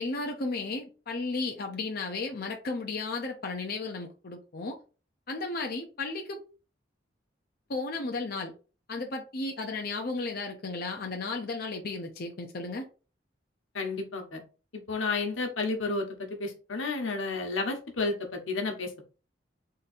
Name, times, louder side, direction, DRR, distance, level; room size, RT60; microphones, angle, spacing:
voice 1, 0.0-4.8 5.3-6.4 7.7-8.5 8.9-12.9, left 3 dB, 50° left, 2 dB, 0.6 m, -34 dB
voice 2, 13.7-14.4 14.9-18.9, left 3 dB, 90° left, 3 dB, 1.1 m, -31 dB
3.8 x 2.7 x 4.1 m, 0.34 s
head